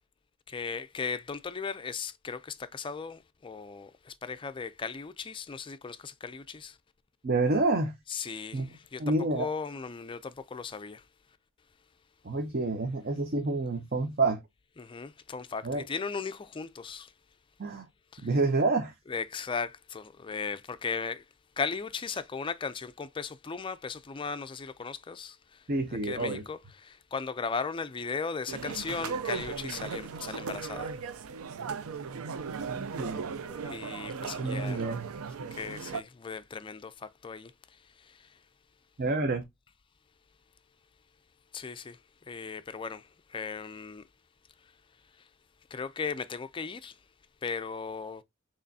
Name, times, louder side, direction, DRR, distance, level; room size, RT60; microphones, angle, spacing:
voice 1, 0.5-6.8 8.1-11.1 14.8-17.1 18.1-18.4 19.1-21.2 21.6-31.0 33.4-34.9 35.5-38.4 41.5-44.1 44.6-44.7 45.1-45.3 45.7-47.0 47.4-48.2, left 5 dB, 25° left, 0.4 m, -37 dB
voice 2, 7.2-8.0 8.5-8.7 9.0-9.5 12.2-14.4 15.6-15.8 17.6-17.9 18.2-18.9 25.7-26.4 32.6-33.4 34.4-35.1 39.0-39.4, right 3 dB, 45° right, 0.6 m, -28 dB
sound 1, 28.5-36.0, right 5 dB, 80° right, 0.5 m, -37 dB
6.6 x 3.0 x 2.7 m
head